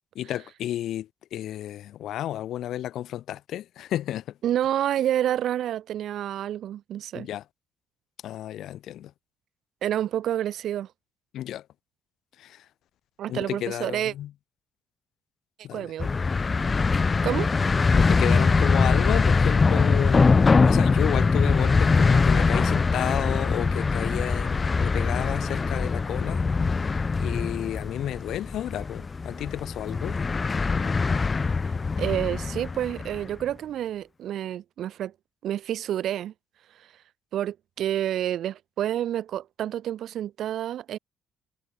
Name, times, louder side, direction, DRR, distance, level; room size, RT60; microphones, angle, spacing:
voice 1, 0.2-4.4 7.1-7.4 8.2-9.1 11.3-11.6 12.4-12.6 13.3-14.3 15.6-15.9 17.9-26.4 27.2-30.2, left 12 dB, 70° left, 2.6 m, -32 dB
voice 2, 4.4-7.3 9.8-10.9 13.2-14.1 15.7-16.1 17.2-17.5 31.6-35.1 35.4-36.3 37.3-41.0, right 11 dB, 70° right, 0.5 m, -29 dB
sound 1, 16.0-33.3, left 4 dB, 35° left, 0.5 m, -22 dB
hypercardioid pair, 55°, 0 cm